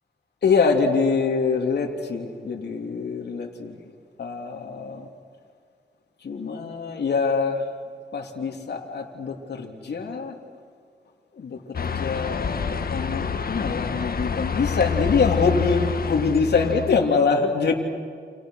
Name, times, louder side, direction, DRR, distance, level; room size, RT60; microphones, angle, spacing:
voice 1, 0.4-3.8 4.2-5.1 6.2-7.7 8.1-10.4 11.3-12.6 12.9-17.7, left 4 dB, 75° left, 0 dB, 3.2 m, -24 dB
sound 1, 11.7-17.1, left 6 dB, 60° left, 1.6 m, -27 dB
30.0 x 28.0 x 6.5 m, 2.1 s
cardioid pair, 65°, 17 cm